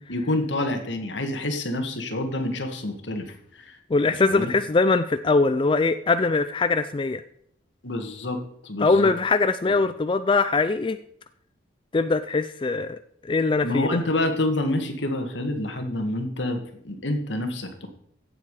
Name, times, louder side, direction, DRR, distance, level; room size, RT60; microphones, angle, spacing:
voice 1, 0.1-3.3 3.7-3.8 4.2-4.5 7.8-8.4 8.6-9.1 9.7-9.8 13.6-17.9, left 1 dB, 80° left, 6 dB, 1.9 m, -27 dB
voice 2, 3.9-7.2 8.8-11.0 11.9-14.0, left 3 dB, 25° left, 11 dB, 0.4 m, -22 dB
16.0 x 7.3 x 4.9 m, 0.68 s
head